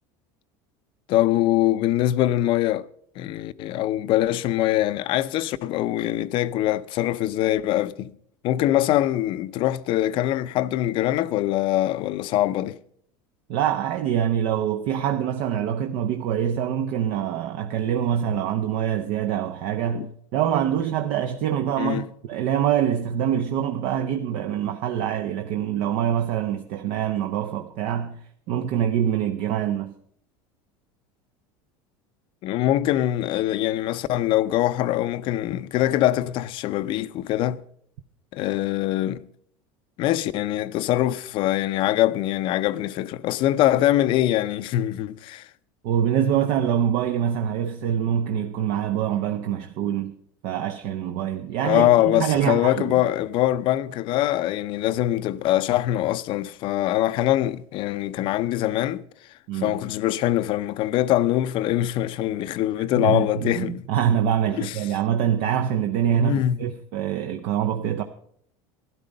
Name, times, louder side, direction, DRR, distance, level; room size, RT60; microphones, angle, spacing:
voice 1, 1.1-2.8 3.2-8.1 8.4-12.8 19.9-20.1 21.8-22.0 32.4-37.6 38.3-39.2 40.0-45.5 51.6-59.0 59.5-63.8 64.6-64.7 66.2-66.7, left 14 dB, 50° left, 0.6 m, -23 dB
voice 2, 13.5-28.2 28.5-29.9 45.8-50.2 50.4-52.9 59.5-59.8 63.0-68.0, right 9 dB, 65° right, 0.8 m, -25 dB
12.5 x 11.5 x 5.3 m
supercardioid pair, 120°, 11 cm